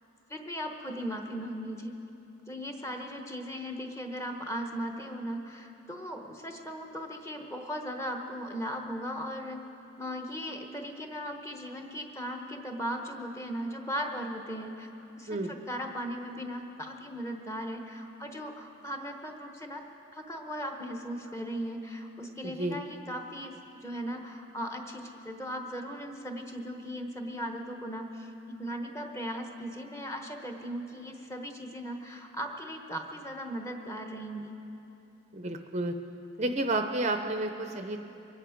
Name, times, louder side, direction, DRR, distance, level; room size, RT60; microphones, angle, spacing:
voice 1, 0.3-2.0 2.5-9.7 10.0-14.9 15.2-19.8 20.1-34.5, equal, 15° left, 3 dB, 1.0 m, -38 dB
voice 2, 22.4-22.8 35.3-35.9 36.4-38.0, right 2 dB, 35° right, 6 dB, 0.6 m, -31 dB
23.0 x 10.0 x 5.1 m, 2.9 s
head